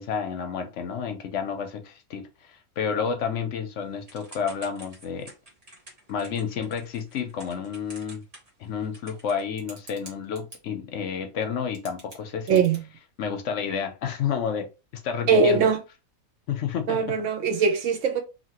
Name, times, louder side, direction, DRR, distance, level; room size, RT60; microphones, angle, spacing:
voice 1, 0.0-5.3 6.1-8.2 8.6-12.6 13.2-14.7 14.9-15.7 16.5-17.0, left 7 dB, 65° left, 0.8 m, -30 dB
Typing / Telephone, 4.1-10.6 11.4-11.5 11.7-12.8, right 1 dB, 30° right, 1.0 m, -47 dB
voice 2, 12.5-12.8 15.3-15.8 16.9-18.2, right 5 dB, 70° right, 0.8 m, -21 dB
2.8 x 2.8 x 2.8 m
omnidirectional pair, 1.5 m